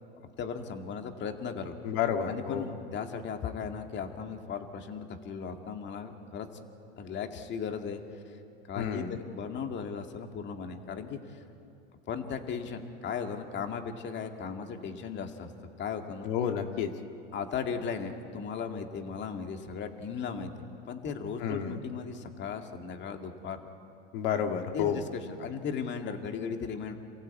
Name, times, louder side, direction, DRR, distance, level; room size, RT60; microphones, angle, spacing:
voice 1, 0.4-1.7 2.3-6.5 7.0-8.0 8.7-11.4 12.1-15.5 15.8-16.5 17.3-20.5 20.9-23.6 24.7-27.0, left 6 dB, 35° left, 5 dB, 2.2 m, -37 dB
voice 2, 1.8-2.7 8.8-9.2 16.2-16.9 21.4-21.8 24.1-25.0, left 8 dB, 65° left, 5 dB, 1.9 m, -30 dB
28.0 x 16.0 x 8.4 m, 2.8 s
hypercardioid pair, 100°, 30 cm